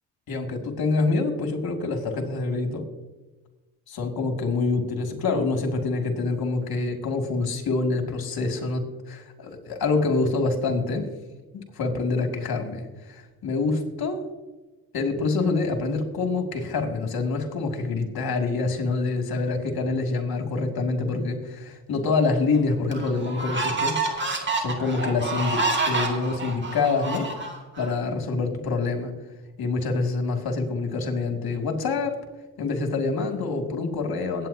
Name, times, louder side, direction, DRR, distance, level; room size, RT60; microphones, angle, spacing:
voice 1, 0.3-2.8 3.9-11.1 11.5-14.2 14.9-24.0 24.6-27.3 27.8-29.1 29.6-32.2 32.6-34.5, left 3 dB, 55° left, 4 dB, 2.5 m, -26 dB
sound 1, 22.2-22.3 22.9-27.9, right 3 dB, 25° right, 2.2 m, -28 dB
22.5 x 9.4 x 2.8 m, 1.2 s
supercardioid pair, 65°, 43 cm